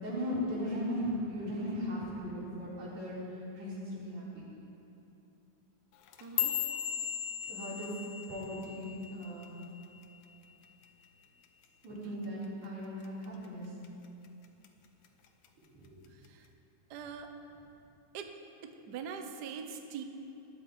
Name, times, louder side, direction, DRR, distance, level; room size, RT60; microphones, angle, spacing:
voice 1, 0.0-3.2 3.5-4.5 7.5-7.9 8.3-9.6 11.8-13.7 15.7-15.9, equal, 85° right, -8 dB, 5.8 m, -37 dB
sound 1, 5.9-10.4 10.6-11.1 11.4-11.9 12.2-12.5 13.0-13.5 13.8-14.7 15.0-15.5 16.3-16.4, left 10 dB, 80° left, 2.4 m, -37 dB
voice 2, 6.2-6.5 16.3-16.4 16.9-17.3 18.1-18.3 18.6-20.0, right 6 dB, 65° right, 5 dB, 1.0 m, -42 dB
20.0 x 12.5 x 5.0 m, 2.9 s
omnidirectional pair, 3.3 m